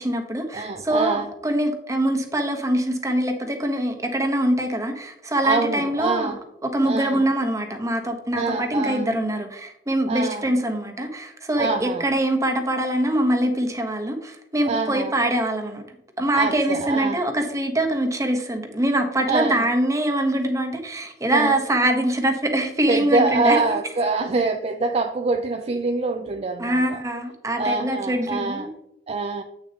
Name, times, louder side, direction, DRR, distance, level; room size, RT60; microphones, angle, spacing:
voice 1, 0.0-6.3 6.6-15.8 16.2-23.6 26.6-28.7, right 1 dB, 20° right, 4 dB, 1.0 m, -23 dB
voice 2, 0.5-1.3 5.4-6.4 6.8-7.2 8.3-9.1 10.1-10.5 11.6-12.1 14.7-15.1 16.3-17.2 19.2-19.6 21.3-21.6 22.9-27.0 27.6-28.7 29.1-29.4, right 3 dB, 35° right, 5 dB, 0.4 m, -25 dB
8.1 x 6.5 x 2.9 m, 0.76 s
head